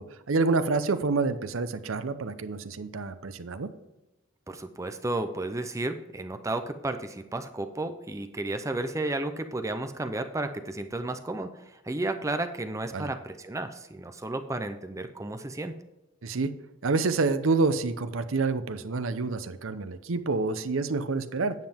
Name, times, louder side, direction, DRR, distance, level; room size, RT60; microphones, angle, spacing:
voice 1, 0.0-3.7 12.9-13.1 16.2-16.5 16.8-21.5, right 3 dB, 85° right, 11 dB, 0.7 m, -28 dB
voice 2, 4.5-15.7, right 2 dB, 15° right, 8 dB, 0.5 m, -33 dB
9.4 x 7.5 x 3.5 m, 0.99 s
head